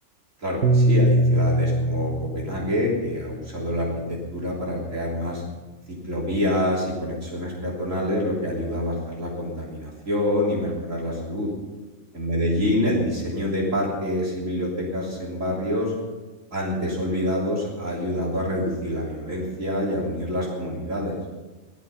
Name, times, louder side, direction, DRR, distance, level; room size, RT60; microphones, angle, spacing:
voice 1, 0.4-5.4 5.9-11.5 12.1-15.9 16.5-21.2, left 1 dB, 55° right, -4 dB, 3.7 m, -26 dB
Piano, 0.6-5.1, right 1 dB, 85° right, 1.6 m, -24 dB
18.5 x 12.0 x 5.6 m, 1.2 s
omnidirectional pair, 1.6 m